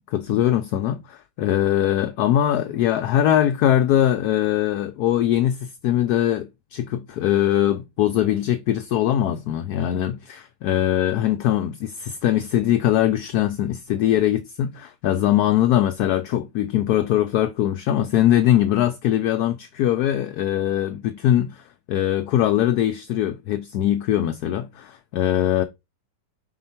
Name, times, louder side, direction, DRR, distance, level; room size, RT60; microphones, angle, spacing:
voice 1, 0.1-25.6, left 12 dB, 70° left, 1.0 m, -21 dB
4.5 x 4.3 x 5.7 m
omnidirectional pair, 1.9 m